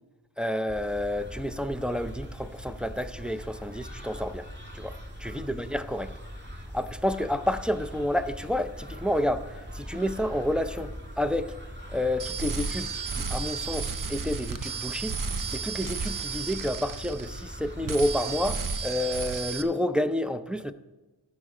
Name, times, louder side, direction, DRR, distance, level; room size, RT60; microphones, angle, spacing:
voice 1, 0.4-4.5 4.7-4.9 5.2-6.1 6.7-9.5 9.7-11.5 11.9-15.2 15.5-20.7, left 1 dB, ahead, 0.5 m, -29 dB
sound 1, 0.7-18.6, equal, 25° right, 1.8 m, -41 dB
sound 2, 12.2-17.6 17.9-19.6, right 5 dB, 50° right, 0.7 m, -33 dB
15.0 x 5.4 x 4.9 m
wide cardioid pair, 50°, 43 cm